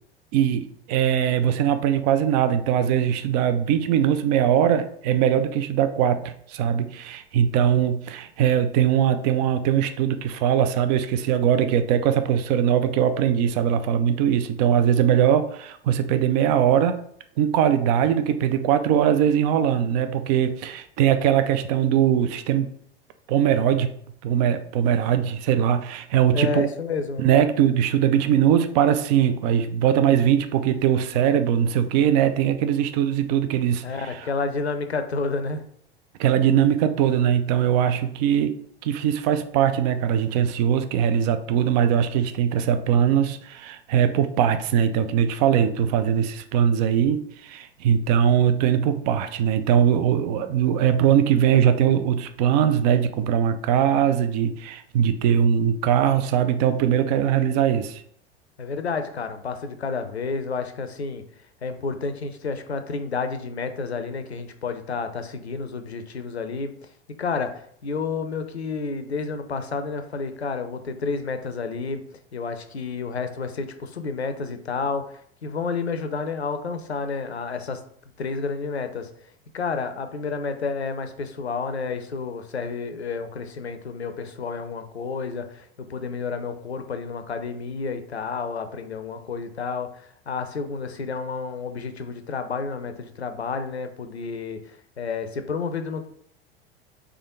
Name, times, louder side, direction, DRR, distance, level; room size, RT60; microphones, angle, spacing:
voice 1, 0.3-17.0 17.4-22.7 23.3-23.9 24.2-26.7 27.2-34.2 36.2-38.5 38.8-58.0, right 9 dB, 40° right, 10 dB, 0.4 m, -21 dB
voice 2, 26.3-27.3 33.8-35.6 58.6-61.2 61.6-66.7 67.2-72.0 72.3-77.8 78.2-79.1 79.5-96.1, left 4 dB, 85° left, 8 dB, 0.5 m, -30 dB
3.6 x 3.4 x 3.6 m, 0.64 s
figure-of-eight pair, 80°, 32 cm